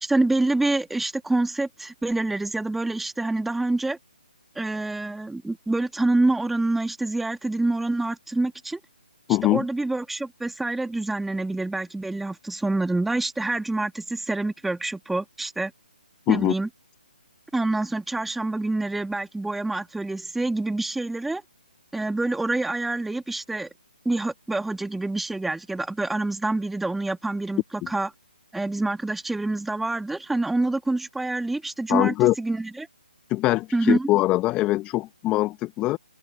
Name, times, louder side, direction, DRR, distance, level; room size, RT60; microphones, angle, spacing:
voice 1, 0.0-4.0 4.5-8.8 9.4-15.7 16.3-16.7 17.5-21.4 21.9-23.7 24.0-28.1 28.5-32.9 33.7-34.1, right 2 dB, 5° right, 1.5 m, -26 dB
voice 2, 9.3-9.7 16.3-16.5 27.8-27.9 31.9-32.3 33.3-36.0, left 17 dB, 20° left, 1.1 m, -22 dB
figure-of-eight pair, 145°, 5 cm